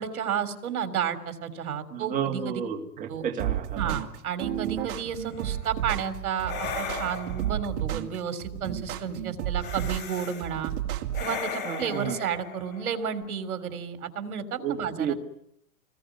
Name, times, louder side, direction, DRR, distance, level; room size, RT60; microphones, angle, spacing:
voice 1, 0.0-2.6 3.1-3.3 3.8-10.7 11.2-15.1, right 7 dB, 70° right, 9 dB, 3.7 m, -32 dB
voice 2, 1.9-4.0 11.6-12.2 14.6-15.1, right 8 dB, 15° right, 2 dB, 2.1 m, -31 dB
sound 1, 3.4-11.4, right 12 dB, 35° right, 2.3 m, -32 dB
sound 2, 5.2-5.6 6.4-7.7 9.6-10.5 11.1-13.4, left 5 dB, 25° left, 3.8 m, -37 dB
27.5 x 21.0 x 9.5 m, 0.74 s
hypercardioid pair, 160°, 44 cm